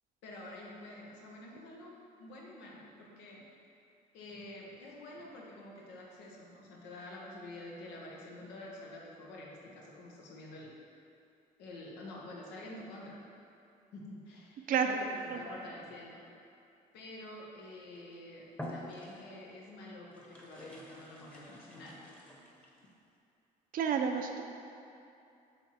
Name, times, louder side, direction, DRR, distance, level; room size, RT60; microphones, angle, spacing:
voice 1, 0.2-1.9 2.2-3.5 4.1-10.7 11.6-13.2 13.9-14.7 15.0-16.2 16.9-22.0, left 1 dB, 90° left, -2 dB, 1.1 m, -48 dB
voice 2, 14.7-15.0 15.3-15.4 23.7-24.4, right 6 dB, 55° right, 4 dB, 0.6 m, -30 dB
sound 1, 17.9-18.1 18.5-19.5 20.1-22.9, left 1 dB, 5° left, 0.9 m, -47 dB
7.9 x 3.3 x 4.2 m, 2.7 s
cardioid pair, 110°, 17 cm